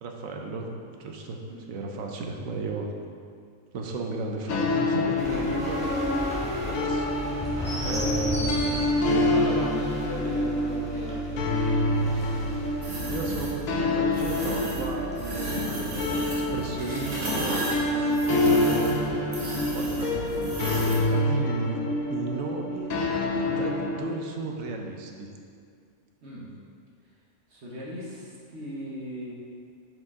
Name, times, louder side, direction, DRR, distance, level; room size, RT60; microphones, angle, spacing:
voice 1, 0.0-2.9 3.7-7.1 7.8-9.5 13.1-17.6 17.9-19.3 19.7-22.9 23.3-25.3, right 3 dB, 70° right, 2 dB, 1.1 m, -35 dB
sound 1, 4.5-24.0, left 1 dB, 80° left, 1.2 m, -27 dB
sound 2, 5.2-19.0, equal, 5° left, 1.3 m, -35 dB
voice 2, 7.8-8.3 9.0-11.8 15.6-15.8 26.2-26.6 27.5-29.3, equal, 55° right, -5 dB, 1.2 m, -39 dB
sound 3, 12.8-13.5 14.1-14.9 15.2-21.1, right 1 dB, 90° right, 1.7 m, -33 dB
7.9 x 5.0 x 3.6 m, 2.2 s
omnidirectional pair, 1.5 m